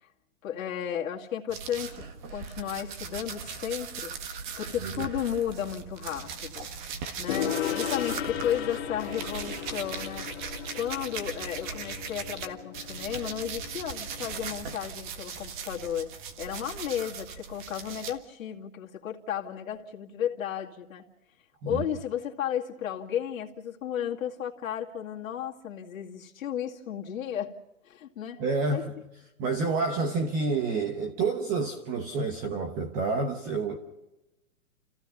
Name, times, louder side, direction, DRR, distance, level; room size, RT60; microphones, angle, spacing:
voice 1, 0.4-2.0 2.3-4.1 4.6-6.7 7.2-10.3 10.7-16.1 16.4-21.0 21.7-27.6 27.9-28.4 28.7-28.8, left 9 dB, 70° left, 2.3 m, -33 dB
sound 1, 1.5-12.5 12.7-18.1, right 6 dB, 35° right, 1.7 m, -39 dB
Gong, 7.3-14.7, left 10 dB, 45° left, 2.4 m, -36 dB
voice 2, 28.4-28.9 29.4-33.8, right 3 dB, 20° right, 1.0 m, -29 dB
29.5 x 16.0 x 5.6 m
hypercardioid pair, 160°, 43 cm